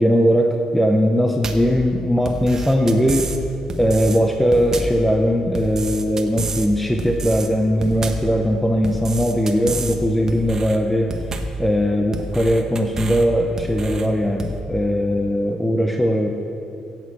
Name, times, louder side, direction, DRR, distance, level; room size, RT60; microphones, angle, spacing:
voice 1, 0.0-3.3 3.8-11.1 11.6-16.3, equal, 5° left, 3 dB, 0.6 m, -19 dB
sound 1, 1.4-1.7 2.3-3.4 3.7-4.2 4.5-5.0 5.5-6.7 7.0-7.5 7.8-8.3 8.8-10.0 10.3-10.8 11.1-11.6 12.1-13.3 13.6-14.1 14.4-14.6, right 3 dB, 25° right, 0.9 m, -29 dB
12.5 x 8.4 x 8.4 m, 2.8 s
cardioid pair, 160°, 2 cm